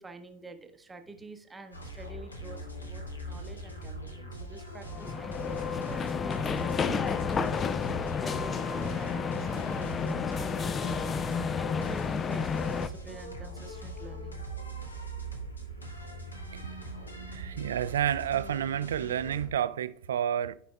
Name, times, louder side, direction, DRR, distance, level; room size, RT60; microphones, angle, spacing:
voice 1, 0.0-7.7 8.2-14.4, right 3 dB, 15° right, 0.8 m, -47 dB
sound 1, 1.7-19.5, right 1 dB, 80° left, 1.0 m, -41 dB
sound 2, 4.9-12.9, left 6 dB, 25° left, 0.4 m, -31 dB
voice 2, 17.3-20.5, right 10 dB, 70° right, 0.3 m, -30 dB
14.0 x 5.0 x 2.3 m
figure-of-eight pair, 80°, 0 cm